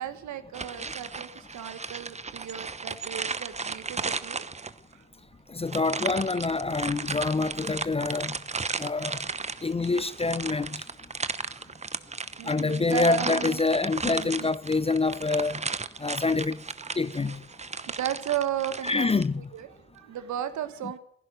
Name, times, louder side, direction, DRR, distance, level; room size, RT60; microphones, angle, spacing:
voice 1, 0.0-4.4 4.9-5.0 9.0-9.2 9.5-9.6 10.0-10.1 10.4-10.6 11.4-13.6 14.0-14.5 16.8-17.0 17.5-19.1 19.5-21.0, right 10 dB, 65° right, 1.5 m, -35 dB
sound 1, 0.5-4.9 5.7-19.3, right 4 dB, 20° right, 0.9 m, -35 dB
voice 2, 5.5-8.4 8.8-9.2 9.6-10.8 12.5-15.6 16.0-16.6 17.0-17.4 18.9-19.5, left 3 dB, 20° left, 0.6 m, -26 dB
15.5 x 11.0 x 7.9 m
hypercardioid pair, 50°, 31 cm